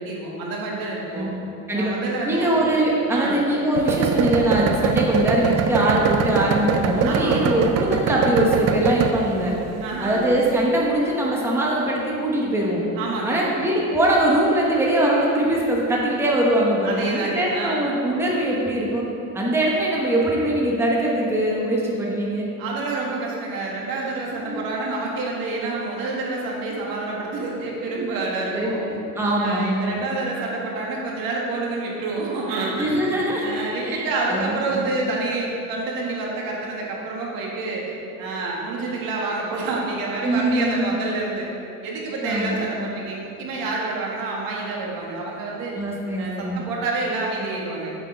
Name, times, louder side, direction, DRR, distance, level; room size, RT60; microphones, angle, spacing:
voice 1, 0.0-1.3 1.7-2.5 3.1-3.4 7.0-7.7 9.8-10.3 13.0-13.5 16.8-18.0 22.6-29.0 29.4-37.9 38.2-41.5 41.8-45.8 46.2-47.9, right 3 dB, 85° right, -3 dB, 1.8 m, -28 dB
voice 2, 1.1-1.9 2.2-9.5 10.0-12.8 13.2-19.1 19.3-22.5 24.3-24.6 28.5-30.0 32.7-33.5 33.8-34.9 40.2-41.0 42.2-42.7 45.7-46.6, right 1 dB, 5° right, -4 dB, 0.9 m, -22 dB
sound 1, 3.7-10.7, right 6 dB, 50° right, 0.5 m, -23 dB
7.9 x 6.4 x 5.0 m, 2.9 s
cardioid pair, 175°, 34 cm